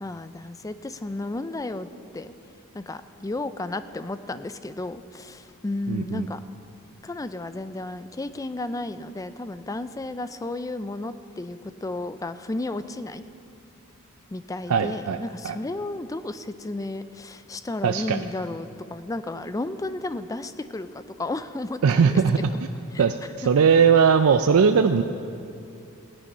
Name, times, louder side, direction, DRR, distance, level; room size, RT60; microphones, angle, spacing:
voice 1, 0.0-2.3 2.7-6.4 7.0-13.2 14.3-22.1 22.9-23.0 23.4-23.5, left 2 dB, 15° left, 12 dB, 0.4 m, -33 dB
voice 2, 5.9-6.3 14.7-15.2 15.4-15.6 17.8-18.2 21.8-22.5 23.0-25.0, right 6 dB, 70° right, 7 dB, 0.4 m, -19 dB
16.0 x 9.9 x 5.6 m, 2.6 s
head